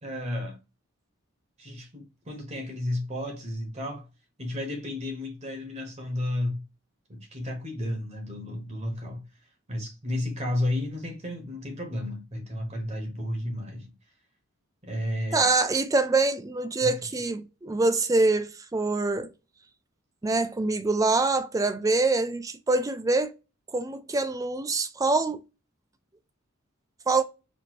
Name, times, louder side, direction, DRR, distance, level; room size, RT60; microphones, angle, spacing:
voice 1, 0.0-0.6 1.6-4.1 4.4-6.6 7.1-9.2 9.7-13.9 14.8-15.5 16.8-16.9, left 1 dB, 30° right, 1.1 m, -32 dB
voice 2, 15.3-19.3 20.2-23.3 23.7-25.4 27.1-27.2, right 3 dB, 15° right, 0.4 m, -25 dB
4.3 x 2.6 x 2.9 m
head